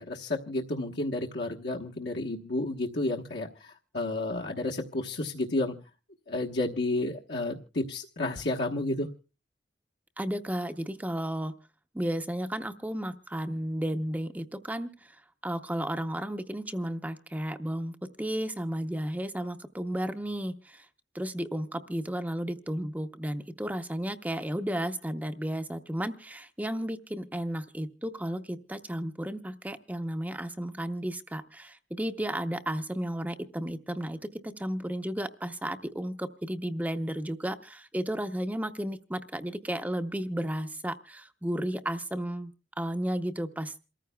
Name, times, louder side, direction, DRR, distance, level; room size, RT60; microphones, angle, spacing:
voice 1, 0.0-5.7 6.3-9.1, left 2 dB, 70° left, -1 dB, 1.1 m, -31 dB
voice 2, 10.2-11.5 11.9-20.9 21.1-42.5 42.8-43.7, right 1 dB, 10° right, 8 dB, 0.6 m, -33 dB
27.5 x 14.5 x 2.2 m, 0.32 s
head